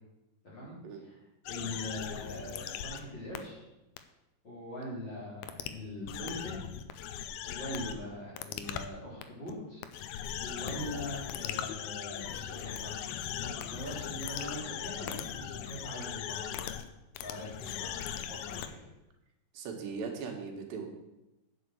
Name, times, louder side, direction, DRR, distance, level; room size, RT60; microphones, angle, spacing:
voice 1, 0.4-0.8 1.0-1.2 1.5-3.6 4.4-6.6 7.4-9.8 10.4-12.9 13.3-16.7 17.2-18.8, left 1 dB, 30° left, -7 dB, 4.2 m, -42 dB
sound 1, 1.5-3.0 3.3-3.4 4.0-4.1 5.4-5.7 6.1-8.0 8.4-8.9 9.2-9.5 9.8-16.9 17.1-18.7, left 10 dB, 80° left, 2.3 m, -39 dB
voice 2, 19.5-20.9, right 5 dB, 90° right, 2 dB, 3.7 m, -39 dB
9.4 x 6.7 x 7.7 m, 0.95 s
omnidirectional pair, 4.7 m